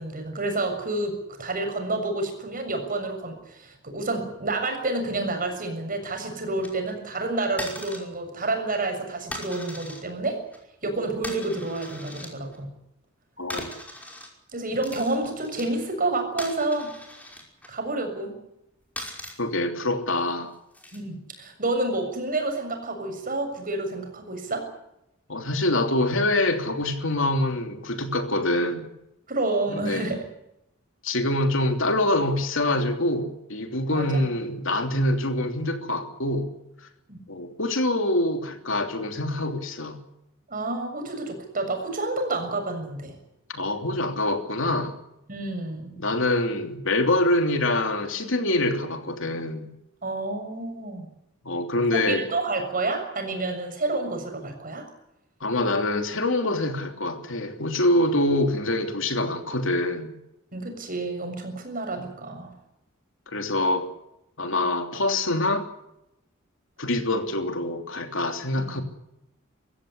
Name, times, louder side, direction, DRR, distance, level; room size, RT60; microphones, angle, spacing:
voice 1, 0.0-10.4 10.8-12.7 14.5-16.9 17.7-18.4 20.9-24.6 29.3-30.1 33.9-34.3 37.1-37.2 40.5-43.2 45.3-46.0 50.0-51.1 51.9-54.8 60.5-62.5 68.6-68.8, right 2 dB, 45° right, 5 dB, 6.9 m, -29 dB
sound 1, 6.6-6.9 7.6-8.0 8.5-8.8 9.3-10.0 10.3-10.6 11.2-12.6 13.5-14.3 14.6-15.7 16.4-17.7 19.0-19.3 20.2-21.0 22.2-22.5, left 1 dB, 10° left, 5.5 m, -39 dB
voice 2, 13.4-13.7 19.4-20.5 25.3-28.9 29.7-30.1 31.0-36.5 37.3-40.0 43.5-45.0 46.0-49.7 51.4-52.2 55.4-60.1 63.3-63.9 64.4-65.7 66.8-68.8, left 1 dB, 65° left, 5 dB, 3.1 m, -25 dB
24.0 x 15.5 x 9.9 m, 0.85 s
head